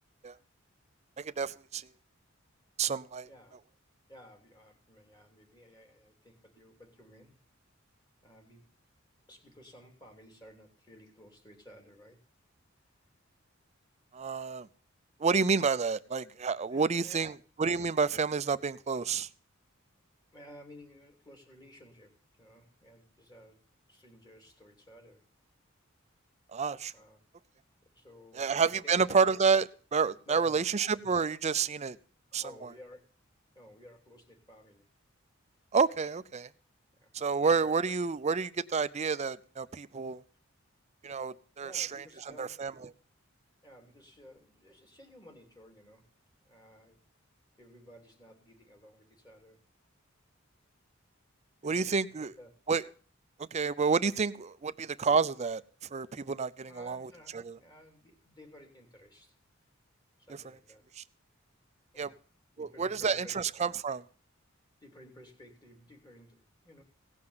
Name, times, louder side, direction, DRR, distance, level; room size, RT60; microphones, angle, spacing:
voice 1, 1.2-1.9 2.8-3.3 14.1-14.7 15.2-19.3 26.5-26.9 28.4-32.0 32.3-32.4 35.7-36.5 37.1-40.2 41.0-42.0 42.4-42.7 51.6-52.3 52.7-52.8 53.4-55.6 55.9-57.5 61.0-61.1 62.0-62.1 62.6-64.0, right 5 dB, 35° right, 0.5 m, -29 dB
voice 2, 3.2-3.6 4.1-7.4 8.2-8.7 9.3-12.2 16.7-17.2 20.3-23.6 23.9-25.3 26.9-27.2 27.9-28.6 28.8-29.1 30.3-30.7 32.4-33.0 33.5-34.8 36.9-37.1 41.6-42.6 43.6-46.1 46.4-47.0 47.6-49.6 51.6-52.5 56.6-59.4 60.2-60.9 61.9-62.2 62.6-63.4 64.8-66.8, equal, 20° left, 3.0 m, -55 dB
17.0 x 5.7 x 7.8 m
head